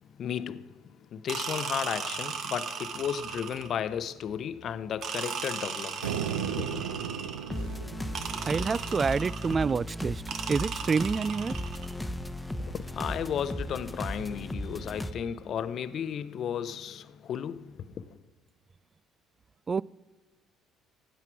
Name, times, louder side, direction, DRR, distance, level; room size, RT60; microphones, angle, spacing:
voice 1, 0.0-6.8 12.6-18.1, left 8 dB, 55° left, 0.6 m, -34 dB
sound 1, 1.3-3.8 5.0-7.6 8.1-9.7 10.3-11.9, right 7 dB, 60° right, 1.1 m, -37 dB
sound 2, 6.0-9.4, right 8 dB, 90° right, 0.6 m, -36 dB
sound 3, 7.5-15.1, equal, 10° left, 1.0 m, -36 dB
voice 2, 8.5-10.2 10.5-11.6 19.7-19.8, right 5 dB, 35° right, 0.3 m, -27 dB
16.5 x 9.2 x 4.6 m
hypercardioid pair, 60°, 0 cm